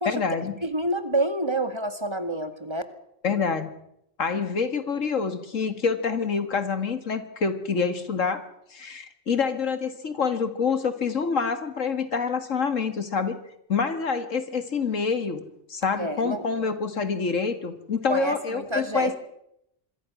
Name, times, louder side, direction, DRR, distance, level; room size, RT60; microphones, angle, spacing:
voice 1, 0.1-0.5 3.2-3.7 4.2-8.4 8.7-13.4 13.7-15.4 15.7-19.1, left 5 dB, 85° left, 10 dB, 2.2 m, -26 dB
voice 2, 0.6-2.8 16.0-16.5 18.1-19.1, right 1 dB, 20° right, 9 dB, 2.0 m, -27 dB
26.5 x 22.5 x 6.2 m, 0.79 s
omnidirectional pair, 1.3 m